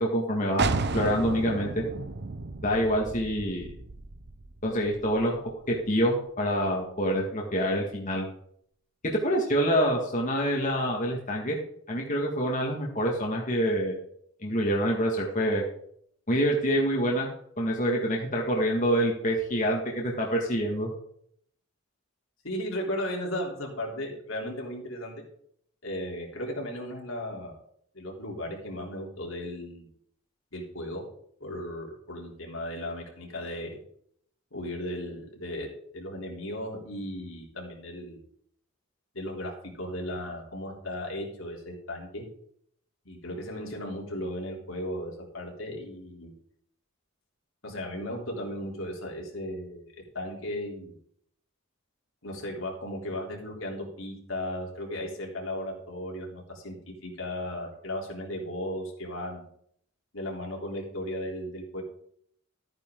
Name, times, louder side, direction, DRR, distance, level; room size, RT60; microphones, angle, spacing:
voice 1, 0.0-1.8 2.6-3.7 4.6-5.4 5.7-8.3 9.1-11.6 11.9-13.9 14.4-15.6 16.3-17.3 17.6-20.9, equal, 40° left, -1 dB, 1.8 m, -26 dB
sound 1, 0.6-6.1, right 3 dB, 55° right, 0.8 m, -33 dB
voice 2, 22.4-25.2 25.8-27.5 27.9-29.9 30.5-31.0 31.4-33.8 34.5-38.2 39.1-42.2 43.1-46.3 47.6-51.0 52.2-59.5 60.1-61.8, left 1 dB, 75° left, -1 dB, 3.6 m, -36 dB
14.0 x 9.4 x 3.8 m, 0.66 s
head